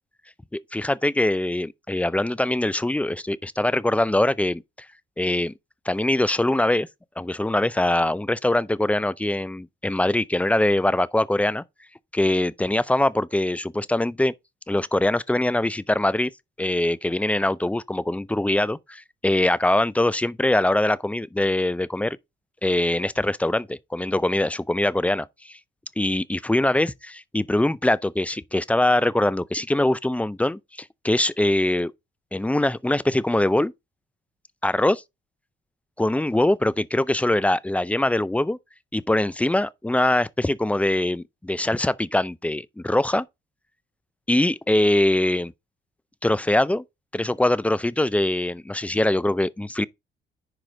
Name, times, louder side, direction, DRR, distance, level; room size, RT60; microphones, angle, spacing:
voice 1, 0.5-4.6 5.2-5.5 5.9-6.9 7.2-11.6 12.1-14.3 14.7-16.3 16.6-22.2 22.6-25.6 26.0-31.9 32.3-33.7 34.6-35.0 36.0-38.6 38.9-43.3 44.3-45.5 46.2-46.8 47.1-49.9, left 1 dB, 5° left, 0.5 m, -23 dB
10.5 x 4.8 x 3.8 m
cardioid pair, 90°, 20 cm